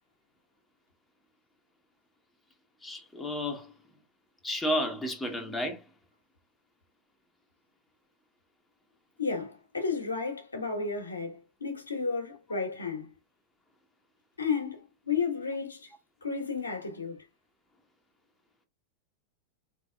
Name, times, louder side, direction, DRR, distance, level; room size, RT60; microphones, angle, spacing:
voice 1, 2.8-3.7 4.4-5.8, equal, 10° left, 1.1 m, -32 dB
voice 2, 9.2-13.1 14.4-15.9 16.2-17.2, left 5 dB, 80° left, 1.4 m, -32 dB
4.1 x 3.5 x 2.4 m
figure-of-eight pair, 90°, 0 cm